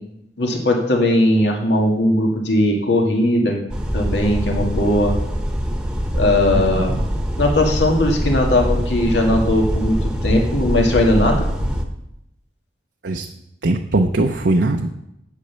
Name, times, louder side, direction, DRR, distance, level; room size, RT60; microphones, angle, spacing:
voice 1, 0.4-3.6 3.9-5.2 6.1-7.0 7.4-11.4, left 1 dB, 75° left, 1 dB, 2.0 m, -18 dB
sound 1, 3.7-11.8, equal, 5° right, 1.2 m, -23 dB
voice 2, 6.7-7.1 13.0-13.3 13.6-14.9, right 2 dB, 75° right, 3 dB, 0.7 m, -20 dB
8.6 x 8.3 x 6.9 m, 0.83 s
head